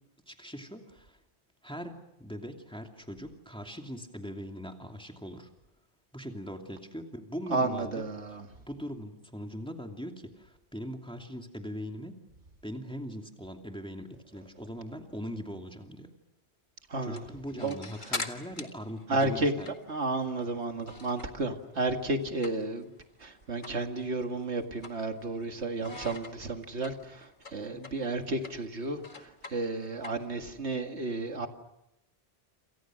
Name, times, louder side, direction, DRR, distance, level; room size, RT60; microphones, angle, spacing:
voice 1, 0.3-1.2 1.6-5.5 6.1-8.1 8.6-12.2 12.6-16.1 17.0-19.7 25.8-25.9 27.7-27.9, equal, 5° left, 3 dB, 2.6 m, -41 dB
voice 2, 7.5-8.5 16.9-17.3 17.6-17.7 19.1-19.5 19.9-22.9 23.2-31.5, right 2 dB, 85° right, 5 dB, 2.3 m, -32 dB
sound 1, 17.0-21.5 21.8-22.9 23.2-23.3 23.6-23.8 24.2-25.4 25.8-30.6, left 3 dB, 45° left, 2.0 m, -42 dB
28.0 x 28.0 x 6.3 m, 0.90 s
omnidirectional pair, 1.1 m